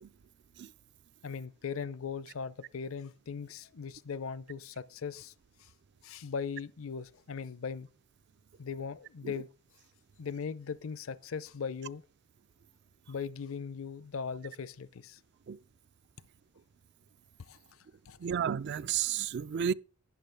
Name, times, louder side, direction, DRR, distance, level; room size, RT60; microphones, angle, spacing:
voice 1, 1.2-5.3 5.6-5.7 6.0-7.9 8.6-9.5 10.2-12.0 13.1-15.2 17.4-17.8 18.1-18.2, left 6 dB, 65° left, 0.5 m, -39 dB
voice 2, 18.2-19.7, right 8 dB, 50° right, 0.4 m, -32 dB
12.0 x 8.8 x 3.4 m
head